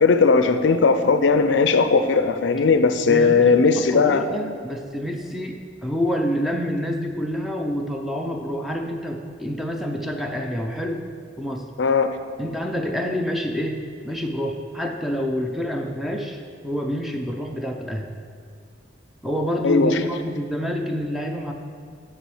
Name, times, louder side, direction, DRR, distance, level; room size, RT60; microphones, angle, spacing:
voice 1, 0.0-4.2 11.8-12.1 19.6-20.0, left 4 dB, 65° left, 9 dB, 0.4 m, -18 dB
voice 2, 3.0-11.0 11.4-11.6 12.4-18.1 19.2-21.5, equal, ahead, 2 dB, 0.5 m, -27 dB
8.2 x 6.1 x 4.8 m, 2.1 s
head